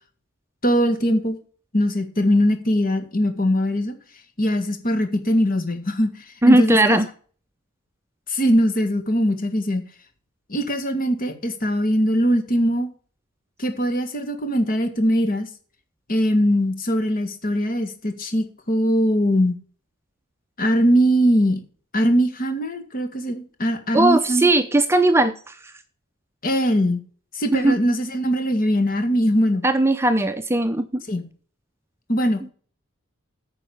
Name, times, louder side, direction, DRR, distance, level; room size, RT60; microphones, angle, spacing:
voice 1, 0.6-1.4 1.7-4.0 4.4-6.8 8.3-9.8 10.5-12.9 13.6-15.5 16.1-19.6 20.6-21.6 21.9-24.5 26.4-27.0 27.3-29.6 31.1-31.3 32.1-32.5, equal, 45° left, 7 dB, 1.9 m, -21 dB
voice 2, 6.4-7.1 23.9-25.6 27.5-27.7 29.6-31.0, right 2 dB, 10° right, 9 dB, 0.6 m, -18 dB
9.6 x 5.4 x 7.1 m, 0.41 s
head